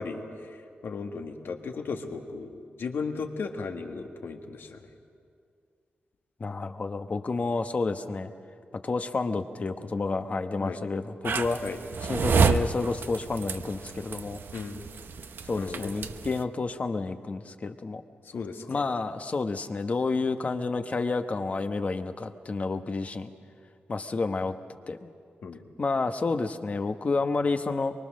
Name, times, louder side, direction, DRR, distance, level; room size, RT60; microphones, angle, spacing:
voice 1, 0.0-2.5 2.8-4.9 10.6-10.8 11.6-11.8 14.5-14.8 15.6-15.9 18.2-18.8 25.4-25.6, left 4 dB, 75° left, 4 dB, 1.7 m, -36 dB
voice 2, 6.4-8.3 8.8-11.6 12.0-14.4 15.4-18.0 18.7-23.3 23.9-24.5 24.9-25.1 25.8-27.9, left 3 dB, 40° left, 8 dB, 1.0 m, -30 dB
sound 1, 11.2-16.4, right 5 dB, 70° right, 0.8 m, -29 dB
24.0 x 23.5 x 6.5 m, 2.3 s
wide cardioid pair, 115°, 4 cm